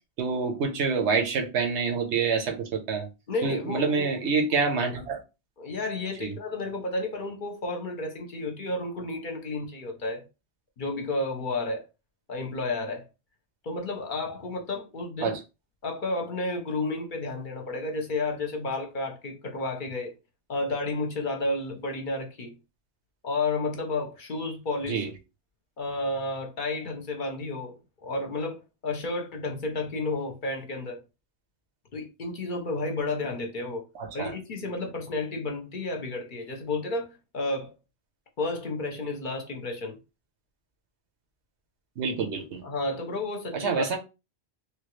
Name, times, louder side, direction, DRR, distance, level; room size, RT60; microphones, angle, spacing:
voice 1, 0.2-3.1 3.4-5.2 6.2-6.3 15.2-15.4 24.9-25.1 33.9-34.3 42.0-42.6 43.5-44.0, right 5 dB, 85° right, 1.1 m, -27 dB
voice 2, 3.3-4.1 5.6-10.2 10.8-11.8 12.3-13.0 13.6-15.4 15.8-20.1 20.5-22.5 23.2-25.1 25.8-27.7 28.0-31.0 31.9-33.8 34.1-37.1 37.3-37.7 38.4-40.0 42.6-44.0, left 2 dB, 55° left, 0.7 m, -31 dB
3.1 x 2.3 x 3.0 m
omnidirectional pair, 1.1 m